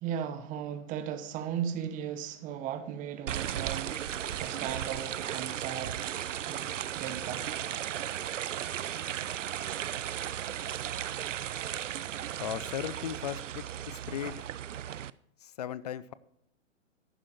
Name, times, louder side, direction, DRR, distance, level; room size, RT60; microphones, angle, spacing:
voice 1, 0.0-6.2 6.5-7.5, right 9 dB, 20° right, 0.9 m, -37 dB
sound 1, 3.3-15.1, right 10 dB, 75° right, 0.5 m, -36 dB
voice 2, 12.4-14.5 15.4-16.1, left 10 dB, 35° left, 0.4 m, -37 dB
13.5 x 11.0 x 2.9 m
figure-of-eight pair, 120°, 38 cm